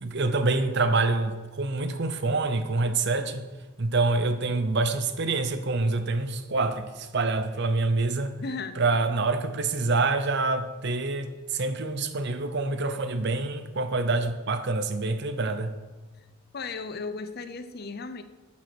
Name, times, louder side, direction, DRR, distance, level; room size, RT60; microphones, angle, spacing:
voice 1, 0.0-3.4 3.8-8.3 8.8-15.7, right 3 dB, 55° right, 10 dB, 0.8 m, -26 dB
voice 2, 8.4-8.8 16.5-18.2, left 4 dB, 50° left, 11 dB, 0.6 m, -35 dB
9.0 x 7.4 x 6.1 m, 1.3 s
head